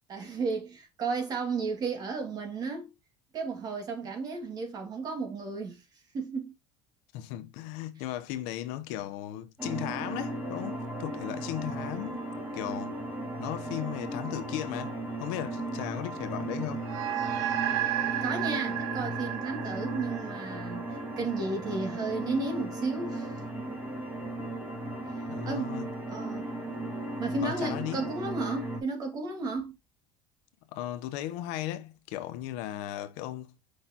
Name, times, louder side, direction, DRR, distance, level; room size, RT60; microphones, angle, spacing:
voice 1, 0.1-2.9 3.3-5.8 6.1-6.5 18.2-23.4 25.4-25.8 26.1-26.5 27.2-29.7, right 4 dB, 35° right, 2.3 m, -33 dB
voice 2, 7.1-12.3 12.5-13.0 13.4-16.9 25.3-25.9 27.4-28.1 30.7-33.5, left 13 dB, 80° left, 0.9 m, -36 dB
sound 1, 9.6-28.8, right 1 dB, 15° right, 2.4 m, -36 dB
sound 2, 16.8-21.5, right 12 dB, 85° right, 0.9 m, -33 dB
6.6 x 5.3 x 2.9 m
cardioid pair, 145°, 11 cm